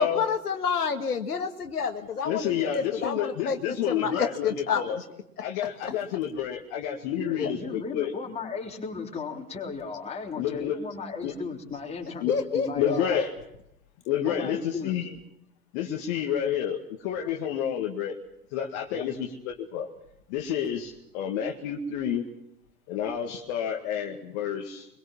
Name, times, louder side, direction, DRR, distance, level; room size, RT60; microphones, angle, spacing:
voice 1, 0.0-5.0 5.8-5.9 7.4-7.5 12.3-13.3, left 6 dB, 75° left, 5 dB, 1.9 m, -29 dB
voice 2, 2.3-5.0 5.4-8.1 10.4-10.8 11.2-11.3 12.2-13.3 14.1-15.1 15.7-18.2 18.5-19.9 20.3-22.3 22.9-24.9, left 9 dB, 45° left, 1 dB, 2.0 m, -29 dB
voice 3, 7.2-12.2 12.6-13.2 14.2-15.0 18.9-19.1, left 5 dB, 15° left, 0 dB, 3.7 m, -36 dB
24.0 x 22.0 x 7.3 m, 0.80 s
figure-of-eight pair, 95°, 46 cm